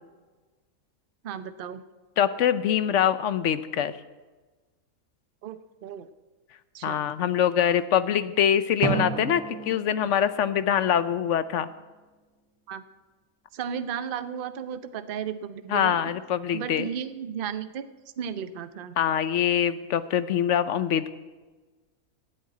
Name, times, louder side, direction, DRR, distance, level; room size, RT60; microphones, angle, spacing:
voice 1, 1.2-1.8 5.4-6.1 6.7-7.0 12.7-12.8 13.5-16.1 16.5-19.0, right 8 dB, 50° right, 11 dB, 0.7 m, -34 dB
voice 2, 2.2-3.9 6.8-11.7 15.7-16.9 19.0-21.1, left 9 dB, 65° left, 13 dB, 0.8 m, -24 dB
Drum, 8.8-11.5, right 5 dB, 80° right, 1.7 m, -33 dB
12.5 x 7.8 x 9.3 m, 1.3 s
omnidirectional pair, 1.6 m